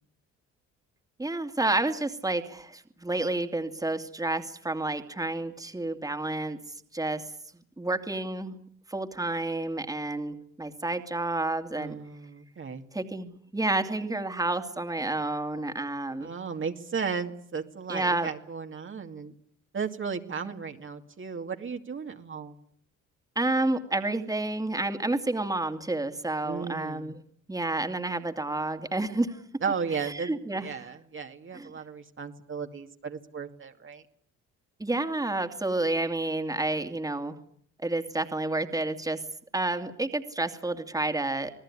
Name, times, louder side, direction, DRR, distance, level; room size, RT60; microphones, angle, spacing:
voice 1, 1.2-6.6 6.9-7.2 7.8-8.5 8.9-12.0 12.9-16.3 17.9-18.3 20.5-20.6 23.4-27.2 27.5-29.4 30.0-30.7 31.5-31.7 34.8-37.4 37.8-39.2 39.5-41.5, right 2 dB, 10° right, 7 dB, 2.6 m, -30 dB
voice 2, 11.8-12.8 16.2-19.3 19.7-22.6 26.4-27.1 29.6-34.0, right 6 dB, 40° right, 5 dB, 2.4 m, -35 dB
27.5 x 18.5 x 9.9 m, 0.64 s
cardioid pair, 90°, 30 cm